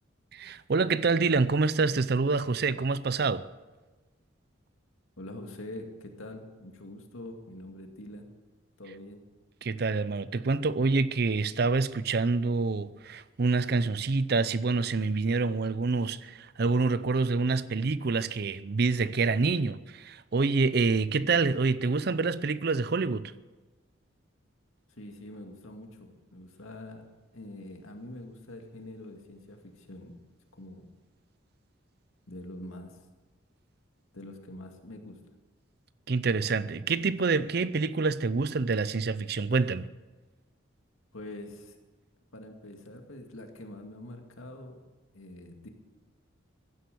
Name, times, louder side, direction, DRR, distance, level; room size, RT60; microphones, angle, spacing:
voice 1, 0.3-3.4 9.6-23.3 36.1-39.9, right 4 dB, 50° right, 0.5 m, -27 dB
voice 2, 5.2-8.3 8.8-9.2 24.9-27.0 27.3-30.1 30.6-30.8 32.3-33.0 34.1-35.2 41.1-41.8 42.3-44.8 45.1-45.7, left 1 dB, 85° left, 2.2 m, -44 dB
15.5 x 11.5 x 6.8 m
head